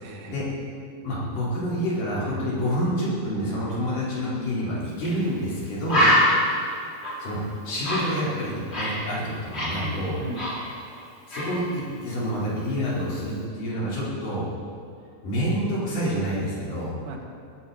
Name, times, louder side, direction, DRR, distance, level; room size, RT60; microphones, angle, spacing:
voice 1, 0.0-0.4 5.9-6.3 9.8-10.5 17.1-17.2, right 2 dB, 70° right, 2 dB, 3.0 m, -37 dB
voice 2, 1.0-6.1 7.2-7.4 7.6-10.2 11.3-14.5 15.2-16.9, equal, 80° left, -8 dB, 6.2 m, -28 dB
Bird, 5.0-5.2 5.5-5.6 5.9-9.1 9.3-11.0 11.3-11.6, equal, 20° left, 3.0 m, -24 dB
19.5 x 16.0 x 4.4 m, 2.5 s
omnidirectional pair, 3.7 m